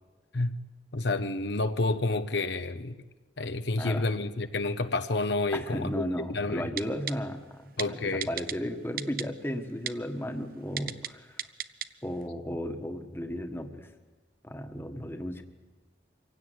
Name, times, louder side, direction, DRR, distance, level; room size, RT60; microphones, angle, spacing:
voice 1, 0.9-3.0 3.4-6.7 7.8-8.3, left 2 dB, 65° left, 9 dB, 0.9 m, -29 dB
voice 2, 3.8-4.1 5.5-11.5 12.0-13.9 14.4-15.4, equal, 10° left, 5 dB, 1.4 m, -35 dB
Typing, 6.8-7.1 7.8-7.9 8.2-8.5 9.0-9.2 9.9-10.0 10.8-11.1 11.4-11.9 12.2-12.3, right 10 dB, 50° right, 0.7 m, -33 dB
25.0 x 16.5 x 9.5 m, 1.2 s
head